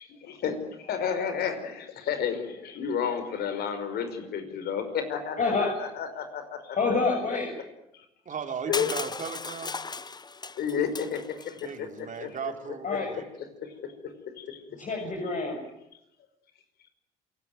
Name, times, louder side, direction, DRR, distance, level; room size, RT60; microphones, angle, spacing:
voice 1, 0.0-6.8 7.1-7.4 7.9-8.0 8.7-8.9 10.5-12.3 13.6-13.9 14.4-14.6, left 7 dB, 60° left, 9 dB, 5.2 m, -32 dB
voice 2, 6.8-7.5 12.8-13.1 14.8-15.6, left 4 dB, 45° left, 1 dB, 7.4 m, -27 dB
voice 3, 8.3-9.7 11.6-13.2, right 6 dB, 45° right, 6 dB, 3.8 m, -37 dB
Crushing, 8.7-11.7, left 4 dB, 20° left, 1.1 m, -36 dB
28.0 x 18.5 x 9.4 m, 0.84 s
hypercardioid pair, 55°, 19 cm